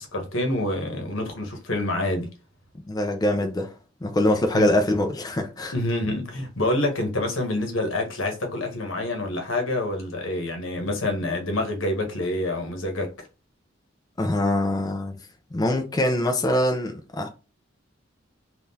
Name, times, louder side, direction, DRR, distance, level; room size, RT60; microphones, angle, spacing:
voice 1, 0.0-2.3 4.5-4.7 5.7-13.3, left 1 dB, 80° left, 0.9 m, -27 dB
voice 2, 2.9-3.7 4.0-5.7 14.2-15.2 15.5-17.3, left 1 dB, 20° left, 0.4 m, -23 dB
3.6 x 2.4 x 2.7 m
head